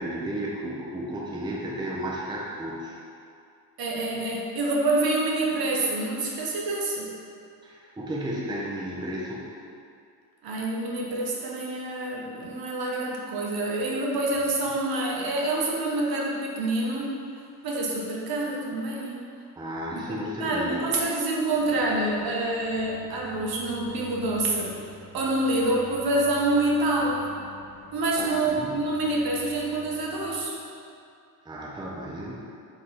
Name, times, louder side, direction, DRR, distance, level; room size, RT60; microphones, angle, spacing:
voice 1, 0.0-3.0 7.6-9.5 19.6-20.9 28.2-28.8 31.4-32.5, right 1 dB, 10° right, -5 dB, 0.6 m, -33 dB
voice 2, 3.8-7.1 10.4-17.1 17.6-19.2 20.1-24.8 25.1-27.3 27.9-30.5, right 2 dB, 60° right, -3 dB, 0.8 m, -27 dB
sound 1, 21.5-30.4, left 2 dB, 25° left, 1.1 m, -48 dB
3.4 x 3.0 x 4.0 m, 2.4 s
cardioid pair, 95°, 41 cm